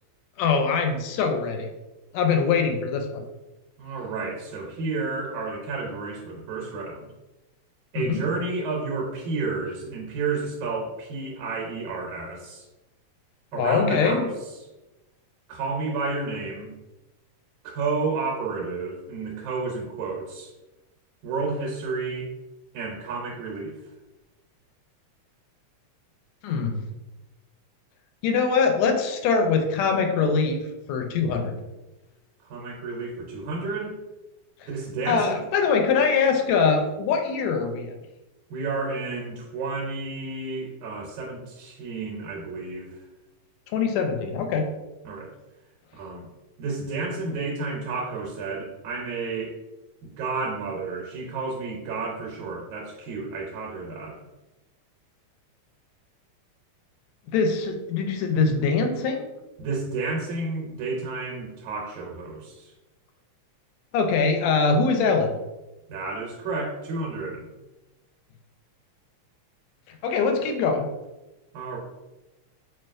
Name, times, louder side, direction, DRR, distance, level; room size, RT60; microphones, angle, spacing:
voice 1, 0.4-1.7 2.1-3.3 7.9-8.2 13.5-14.3 26.4-26.8 28.2-30.6 30.9-31.6 34.6-34.7 35.1-37.9 43.7-44.7 57.3-59.3 63.9-65.3 70.0-70.9, left 5 dB, 80° left, 4 dB, 1.7 m, -23 dB
voice 2, 3.8-7.1 7.9-12.7 13.5-14.3 15.5-16.7 17.6-20.5 21.2-22.3 22.7-23.8 32.4-33.9 34.7-35.4 38.5-43.0 45.1-45.3 45.9-46.3 46.6-49.5 50.0-54.2 59.6-62.7 65.9-67.5 71.5-71.8, right 3 dB, 90° right, -1 dB, 2.1 m, -31 dB
6.2 x 2.3 x 2.5 m, 1.0 s
omnidirectional pair, 3.4 m